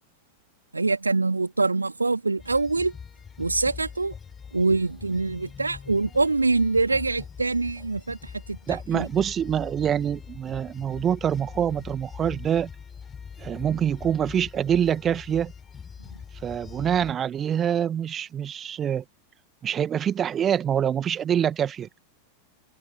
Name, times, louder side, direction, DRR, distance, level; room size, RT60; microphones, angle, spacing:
voice 1, 0.7-2.9 3.4-4.1 4.5-8.2 8.5-8.6 8.9-9.1, right 3 dB, 80° right, 2.7 m, -24 dB
sound 1, 2.4-17.1, left 6 dB, 20° left, 4.8 m, -42 dB
voice 2, 8.7-12.7 13.4-15.5 16.4-19.0 19.6-21.9, right 9 dB, 25° right, 1.7 m, -25 dB
figure-of-eight pair, 90°, 0 cm